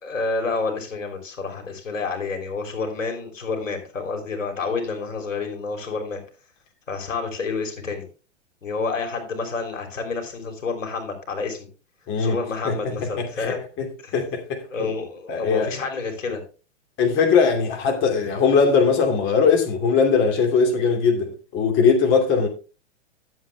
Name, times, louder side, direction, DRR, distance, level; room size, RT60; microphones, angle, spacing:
voice 1, 0.0-6.2 6.9-8.1 8.6-11.7 12.2-13.6 14.0-14.2 14.7-16.4, left 4 dB, 90° left, 3.4 m, -29 dB
voice 2, 12.1-12.4 12.6-12.7 13.0-13.9 14.1-14.9 15.3-15.7 17.0-22.5, left 5 dB, 30° left, 2.6 m, -20 dB
11.5 x 7.9 x 3.4 m
hypercardioid pair, 120°, 37 cm